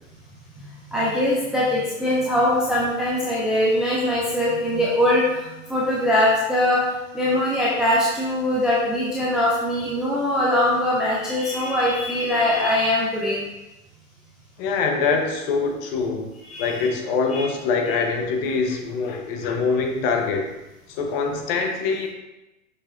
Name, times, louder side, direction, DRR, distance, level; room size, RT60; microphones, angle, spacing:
voice 1, 0.9-6.8 7.1-13.4 16.5-16.9 17.3-17.4 17.9-18.0, left 1 dB, ahead, -7 dB, 0.3 m, -22 dB
voice 2, 14.6-16.3 16.6-20.5 20.9-22.1, left 4 dB, 45° left, 3 dB, 1.2 m, -24 dB
6.3 x 5.6 x 2.7 m, 0.97 s
hypercardioid pair, 120°, 41 cm